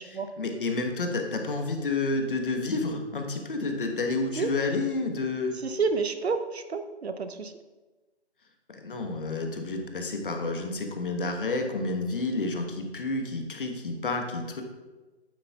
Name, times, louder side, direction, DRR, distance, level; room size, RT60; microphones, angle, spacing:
voice 1, 0.0-5.5 8.7-14.6, left 3 dB, 50° left, 3 dB, 1.2 m, -30 dB
voice 2, 5.6-7.5, right 4 dB, 70° right, 9 dB, 0.8 m, -29 dB
8.7 x 8.0 x 2.3 m, 1.2 s
figure-of-eight pair, 155°, 33 cm